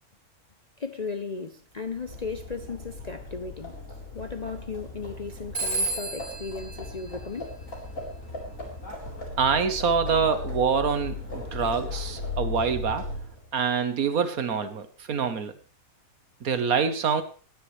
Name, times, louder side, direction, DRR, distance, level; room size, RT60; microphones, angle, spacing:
voice 1, 0.8-3.8 4.1-7.5, left 4 dB, 40° left, 0.6 m, -36 dB
Livestock farm animals working animals, 1.8-13.5, left 3 dB, 60° left, 4.5 m, -37 dB
Telephone, 5.5-8.0, right 3 dB, 15° left, 3.5 m, -33 dB
voice 2, 9.4-13.1 13.5-15.5 16.4-17.2, right 6 dB, 70° right, 1.6 m, -25 dB
20.0 x 10.5 x 3.3 m
omnidirectional pair, 1.6 m